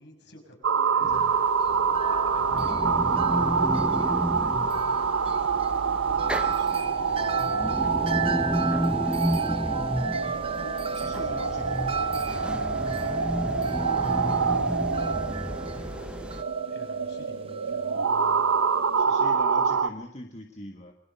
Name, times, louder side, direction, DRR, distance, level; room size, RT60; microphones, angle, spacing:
voice 1, 0.0-1.5 2.0-4.5 5.3-8.0 8.3-15.4 15.7-16.4 16.7-18.4, left 1 dB, 55° left, 3 dB, 6.1 m, -50 dB
sound 1, 0.6-19.9, right 5 dB, 85° right, 0.8 m, -26 dB
sound 2, 1.0-16.4, equal, 5° right, 0.8 m, -32 dB
Wind chime, 1.1-19.0, right 4 dB, 25° right, 1.0 m, -37 dB
voice 2, 6.2-6.9 10.9-11.9 19.0-20.9, left 1 dB, 35° left, 3 dB, 1.6 m, -43 dB
27.5 x 22.0 x 5.6 m, 0.71 s
head